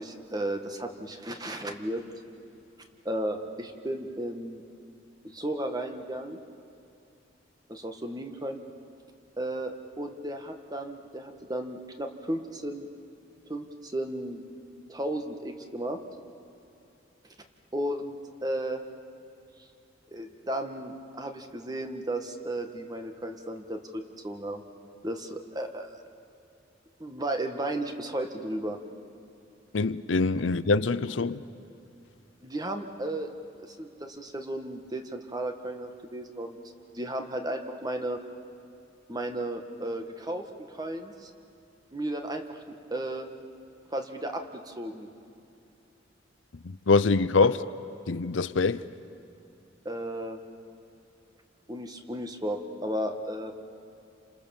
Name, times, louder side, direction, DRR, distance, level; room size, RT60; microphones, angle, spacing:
voice 1, 0.0-2.0 3.0-4.6 5.2-6.4 7.7-8.6 9.4-12.9 13.5-14.4 14.9-16.0 17.7-18.8 20.1-24.6 25.0-25.9 27.0-28.8 32.4-33.3 33.6-36.6 36.9-38.2 39.1-41.3 41.9-43.3 43.9-45.1 49.8-50.4 51.7-53.5, right 1 dB, 20° right, 1.7 m, -34 dB
voice 2, 29.7-31.4 46.6-47.6 48.1-48.8, left 4 dB, 85° left, 0.7 m, -24 dB
29.5 x 27.0 x 7.2 m
head